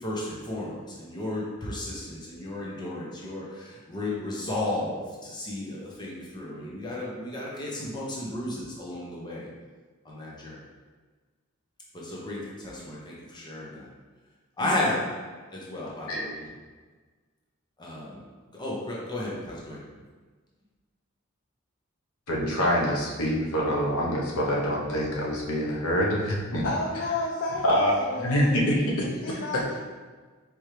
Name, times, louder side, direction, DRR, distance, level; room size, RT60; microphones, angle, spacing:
voice 1, 0.0-9.5 10.0-10.6 11.9-13.9 14.6-15.0 15.5-16.2 17.8-18.2 18.5-19.8, left 1 dB, 20° left, -5 dB, 0.8 m, -33 dB
voice 2, 14.6-14.9 26.6-28.6 29.0-29.8, left 2 dB, 50° left, -2 dB, 0.5 m, -32 dB
voice 3, 16.1-16.4 22.3-26.7 27.6-28.0 28.2-28.8, equal, 85° left, -3 dB, 1.0 m, -25 dB
4.5 x 3.5 x 3.2 m, 1.4 s
head